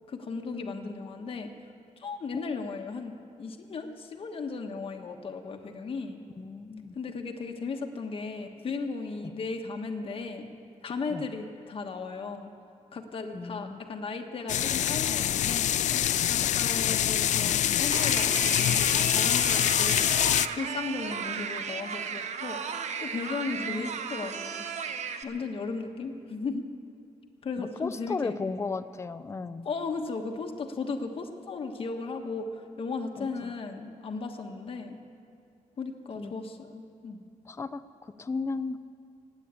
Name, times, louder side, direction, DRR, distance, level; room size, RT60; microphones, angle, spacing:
voice 1, 0.1-1.5 2.0-6.2 6.9-10.5 10.8-12.5 12.9-15.7 16.2-20.1 20.6-22.6 23.0-24.6 25.2-26.7 27.4-28.4 29.6-35.0 35.8-37.2, left 4 dB, 45° left, 3 dB, 1.2 m, -36 dB
voice 2, 6.4-6.9 9.2-9.3 11.1-11.2 13.3-13.8 16.4-16.5 23.6-24.0 27.6-29.7 33.2-33.5 36.2-36.3 37.5-38.8, left 4 dB, 20° left, 12 dB, 0.6 m, -35 dB
sound 1, 14.5-20.5, left 11 dB, 65° left, 0.4 m, -25 dB
sound 2, 17.9-25.2, right 6 dB, 60° right, 0.9 m, -35 dB
17.5 x 9.2 x 8.3 m, 2.4 s
cardioid pair, 125°, 13 cm